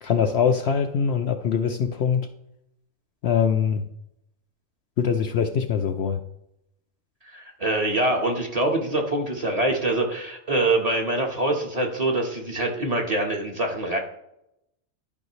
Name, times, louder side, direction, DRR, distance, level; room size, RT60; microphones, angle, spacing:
voice 1, 0.0-2.3 3.2-3.9 5.0-6.2, left 7 dB, 65° left, 6 dB, 0.7 m, -23 dB
voice 2, 7.3-14.0, right 2 dB, 30° right, 1 dB, 1.3 m, -24 dB
12.0 x 5.3 x 3.1 m, 0.81 s
omnidirectional pair, 1.4 m